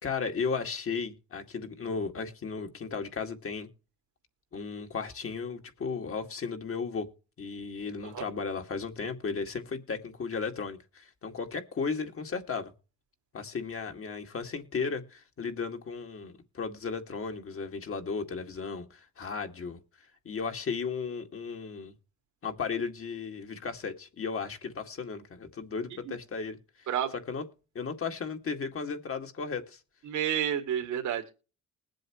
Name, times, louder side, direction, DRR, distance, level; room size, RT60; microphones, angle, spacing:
voice 1, 0.0-3.7 4.5-7.1 7.4-12.7 13.3-19.8 20.3-21.9 22.4-27.5 27.7-29.8, left 5 dB, 45° left, 2.2 m, -35 dB
voice 2, 30.1-31.3, right 9 dB, 75° right, 2.0 m, -30 dB
20.5 x 7.7 x 3.1 m
cardioid pair, 90°, 30 cm